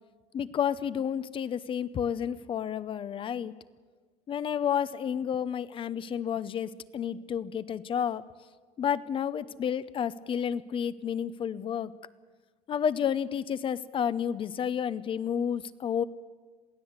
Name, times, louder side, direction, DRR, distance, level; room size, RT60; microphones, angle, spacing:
voice 1, 0.3-3.5 4.3-8.2 8.8-11.9 12.7-16.0, left 8 dB, 35° left, 16 dB, 0.8 m, -30 dB
22.5 x 16.0 x 8.1 m, 1.4 s
cardioid pair, 130°, 15 cm